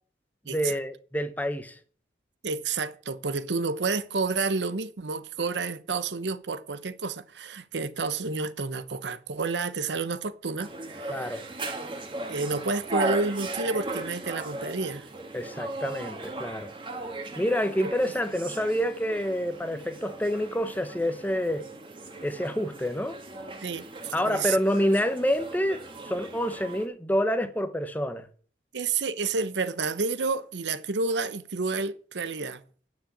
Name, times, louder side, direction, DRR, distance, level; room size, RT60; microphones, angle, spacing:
voice 1, 0.5-1.8 11.1-11.4 15.3-16.7 17.4-21.6 22.2-23.2 24.1-25.8 26.1-28.3, equal, 10° left, 0.8 m, -27 dB
voice 2, 2.4-11.4 11.8-11.9 12.3-15.1 17.8-17.9 23.6-23.8 24.2-24.6 28.7-32.6, right 4 dB, 85° right, 0.9 m, -30 dB
sound 1, 10.6-26.9, right 2 dB, 30° right, 1.8 m, -37 dB
9.9 x 6.3 x 8.3 m
head